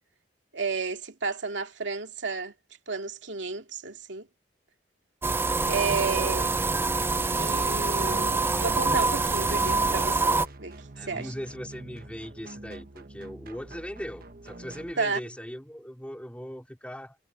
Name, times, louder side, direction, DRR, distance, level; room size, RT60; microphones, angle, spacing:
voice 1, 0.5-2.5 2.9-4.3 5.7-6.5 7.3-11.3 15.0-15.2, right 4 dB, 75° right, 2.4 m, -32 dB
sound 1, 5.2-10.5, right 3 dB, 10° right, 0.3 m, -25 dB
sound 2, 7.5-14.9, right 2 dB, 50° right, 1.2 m, -44 dB
voice 2, 11.0-17.2, equal, 5° left, 3.0 m, -39 dB
head